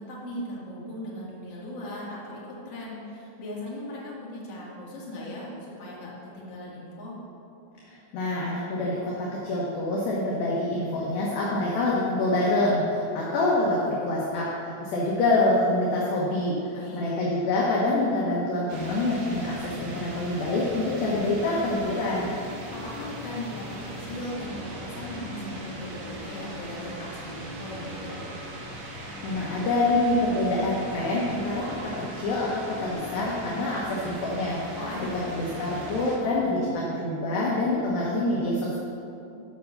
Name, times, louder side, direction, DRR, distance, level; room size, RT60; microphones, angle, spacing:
voice 1, 0.0-7.1 16.7-17.2 22.8-28.1 34.7-35.3, left 1 dB, 40° left, -7 dB, 2.5 m, -38 dB
voice 2, 7.8-22.3 29.0-34.8 35.3-38.8, left 2 dB, 70° left, -5 dB, 2.4 m, -26 dB
sound 1, 18.7-36.2, equal, 65° right, 2.4 m, -39 dB
9.4 x 5.5 x 6.7 m, 2.7 s
omnidirectional pair, 5.2 m